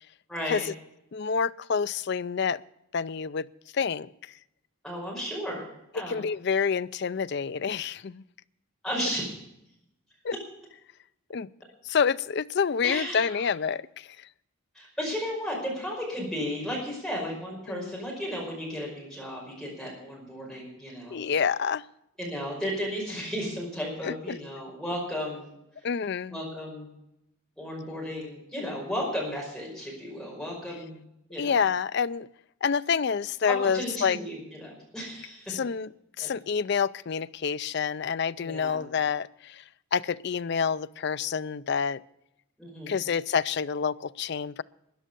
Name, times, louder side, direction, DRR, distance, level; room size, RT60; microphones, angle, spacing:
voice 1, 0.3-0.6 4.8-5.7 5.9-6.2 8.8-9.3 12.8-13.2 14.7-21.2 22.2-25.5 25.8-25.9 26.3-26.9 27.6-31.0 31.3-31.6 33.5-35.6 36.2-36.3 38.4-38.9 42.6-42.9, equal, 5° left, 5.3 m, -34 dB
voice 2, 1.1-2.6 2.9-4.3 6.0-8.2 10.2-10.4 11.3-11.5 11.8-14.3 17.7-17.9 21.1-21.9 24.0-24.4 25.8-26.4 31.4-32.3 32.6-34.2 35.5-35.9 36.2-39.6 39.9-42.0 42.9-44.6, left 6 dB, 50° left, 0.4 m, -28 dB
14.0 x 10.0 x 6.8 m
head